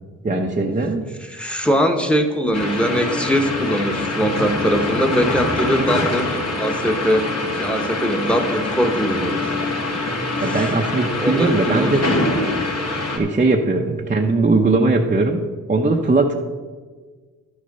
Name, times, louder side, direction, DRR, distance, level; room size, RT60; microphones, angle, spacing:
voice 1, 0.2-1.1 10.1-12.1 13.1-15.4 15.7-16.3, right 3 dB, 25° right, 0 dB, 0.8 m, -19 dB
voice 2, 1.3-6.3 6.6-7.3 7.5-9.4 10.4-10.7 11.2-11.9, equal, 5° left, 6 dB, 1.3 m, -21 dB
sound 1, 2.5-13.2, left 2 dB, 50° left, 2.1 m, -24 dB
11.5 x 6.5 x 5.4 m, 1.4 s
cardioid pair, 75°, 33 cm